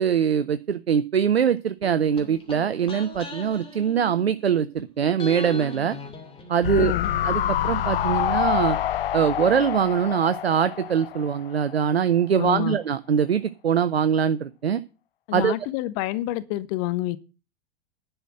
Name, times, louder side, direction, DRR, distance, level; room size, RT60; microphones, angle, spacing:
voice 1, 0.0-6.0 6.5-6.9 7.2-8.8 9.1-14.8 15.3-15.5, right 8 dB, 80° right, 0.6 m, -23 dB
sound 1, 1.8-4.8 5.2-9.0 9.3-9.4, left 2 dB, 15° left, 2.6 m, -40 dB
sound 2, 6.6-11.9 12.2-12.3, left 11 dB, 65° left, 0.5 m, -27 dB
voice 2, 6.7-7.1 12.4-12.8 15.3-17.2, left 16 dB, 40° left, 0.9 m, -28 dB
11.0 x 5.6 x 7.6 m
figure-of-eight pair, 90°, 31 cm